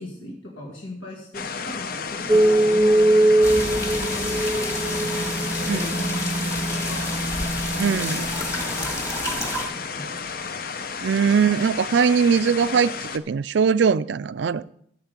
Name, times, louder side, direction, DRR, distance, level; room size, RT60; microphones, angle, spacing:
voice 1, 0.0-6.2 6.5-7.2 7.8-10.1, left 1 dB, 85° left, 2.1 m, -40 dB
sound 1, 1.3-13.2, left 5 dB, 50° left, 0.6 m, -32 dB
sound 2, 2.3-9.2, right 1 dB, ahead, 0.8 m, -22 dB
sound 3, 3.4-9.6, left 1 dB, 15° left, 1.8 m, -30 dB
voice 2, 5.7-6.0 7.8-8.3 11.0-14.6, right 6 dB, 65° right, 0.4 m, -21 dB
13.0 x 7.3 x 5.1 m
head